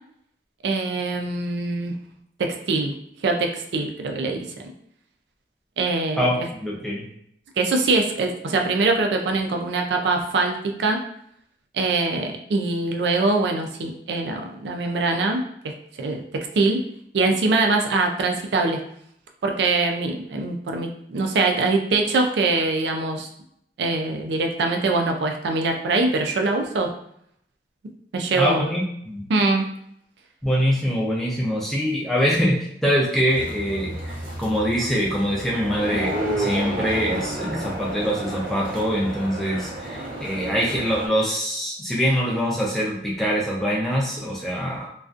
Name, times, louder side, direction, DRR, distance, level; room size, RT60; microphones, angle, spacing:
voice 1, 0.6-1.9 2.4-2.9 3.2-4.5 5.8-6.5 7.6-11.0 11.7-15.4 16.0-16.2 16.5-16.8 17.1-18.8 19.4-23.3 23.8-26.9 28.1-28.6 29.3-29.7, right 3 dB, 75° right, 3 dB, 0.4 m, -23 dB
voice 2, 6.2-7.1 28.3-29.2 30.4-36.1 36.4-44.9, equal, ahead, -4 dB, 0.4 m, -24 dB
sound 1, 33.3-41.1, right 1 dB, 50° right, 0.7 m, -31 dB
2.4 x 2.3 x 2.4 m, 0.70 s
head